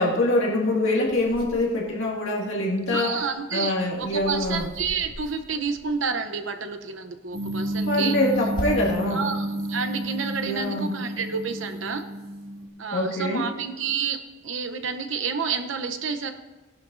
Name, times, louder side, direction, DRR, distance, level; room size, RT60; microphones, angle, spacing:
voice 1, 0.0-3.2 3.5-4.6 7.9-9.2 10.4-10.9 12.9-13.4, left 1 dB, 90° left, -1 dB, 2.1 m, -24 dB
sound 1, 1.1-2.4 2.8-6.3 7.3-9.2 9.7-10.6, equal, 45° left, 2.4 m, -40 dB
voice 2, 2.9-8.2 9.1-12.0 12.8-16.3, right 5 dB, 85° right, 6 dB, 0.8 m, -30 dB
sound 2, 7.3-12.7, right 1 dB, 60° right, 2.0 m, -30 dB
18.0 x 11.0 x 2.7 m, 1.3 s
head